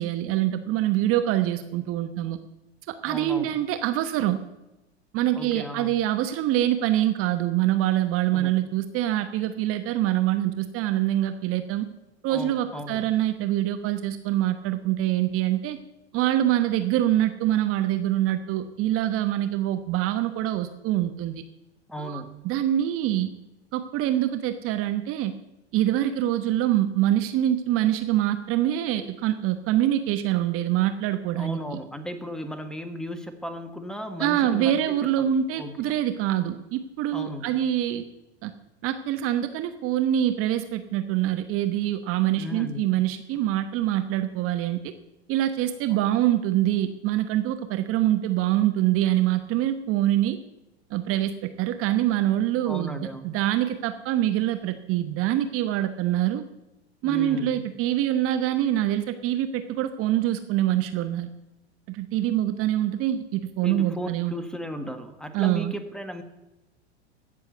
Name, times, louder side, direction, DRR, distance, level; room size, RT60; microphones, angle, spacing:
voice 1, 0.0-2.4 2.9-4.4 5.1-11.9 12.2-15.8 16.1-21.4 22.0-23.3 23.7-25.3 25.7-31.6 34.2-38.0 38.4-38.5 38.8-44.9 45.3-50.4 50.9-56.4 57.0-61.3 61.9-64.3 65.3-65.7, right 12 dB, 40° right, 9 dB, 1.0 m, -25 dB
voice 2, 3.0-3.6 5.3-6.0 8.3-8.5 12.3-13.0 21.9-22.5 31.4-34.8 35.2-35.3 35.6-35.8 37.1-37.5 42.4-43.1 45.9-46.0 52.6-53.3 57.0-57.6 63.6-66.2, equal, ahead, 8 dB, 1.5 m, -36 dB
16.5 x 6.8 x 8.0 m, 0.97 s
hypercardioid pair, 95°, 33 cm